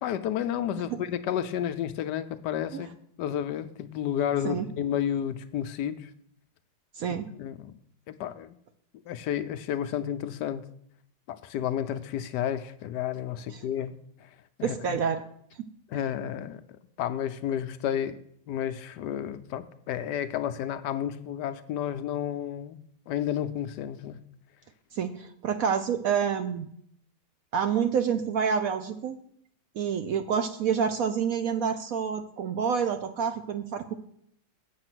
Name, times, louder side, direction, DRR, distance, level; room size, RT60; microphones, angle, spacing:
voice 1, 0.0-6.1 7.4-7.8 8.1-8.6 9.1-10.7 11.3-14.3 14.6-15.0 15.9-16.6 17.0-18.2 18.5-24.2, left 10 dB, 75° left, 1.1 m, -31 dB
voice 2, 14.6-15.2 24.9-26.7 27.5-29.2 29.8-33.9, right 7 dB, 65° right, 0.9 m, -28 dB
7.8 x 7.3 x 6.1 m
omnidirectional pair, 1.9 m